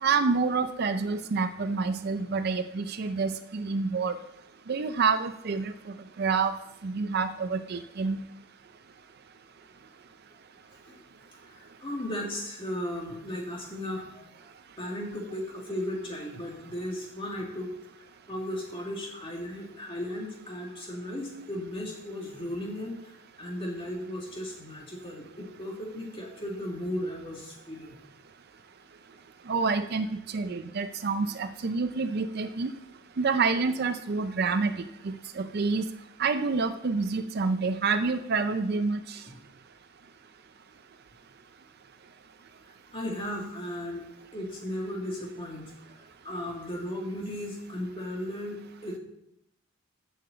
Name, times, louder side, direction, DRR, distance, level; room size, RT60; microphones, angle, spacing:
voice 1, 0.0-4.2 4.7-5.7 6.2-6.5 6.8-8.2 29.5-30.1 30.3-32.7 33.2-34.8 35.0-35.8 36.2-39.2, right 4 dB, 45° right, 10 dB, 0.4 m, -28 dB
voice 2, 11.5-14.3 14.8-17.7 18.3-23.1 23.4-28.0 39.3-39.4 42.9-44.1 44.3-45.7 46.0-49.0, left 1 dB, 25° left, -1 dB, 2.2 m, -36 dB
7.7 x 6.7 x 7.7 m, 0.81 s
head